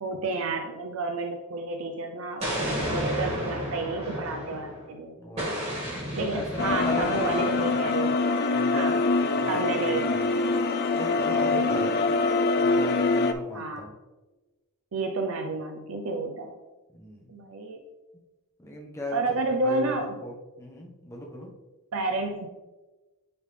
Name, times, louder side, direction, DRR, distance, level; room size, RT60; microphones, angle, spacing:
voice 1, 0.0-5.1 6.2-8.3 8.7-9.0 9.5-10.3 11.2-12.3 13.5-13.9 14.9-16.5 17.3-17.8 19.1-20.2 21.9-22.5, right 3 dB, 65° right, 3 dB, 0.6 m, -31 dB
Explosion, 2.4-4.9 5.4-7.9, equal, 30° right, 2.1 m, -32 dB
voice 2, 5.2-5.6 6.1-7.9 8.5-10.4 10.9-12.2 12.6-13.9 16.9-17.3 18.6-19.2 19.6-19.9 20.2-21.5, left 1 dB, 15° left, -2 dB, 1.1 m, -38 dB
sound 1, 6.6-13.3, left 3 dB, 45° left, 0.4 m, -24 dB
9.7 x 3.7 x 3.4 m, 1.2 s
head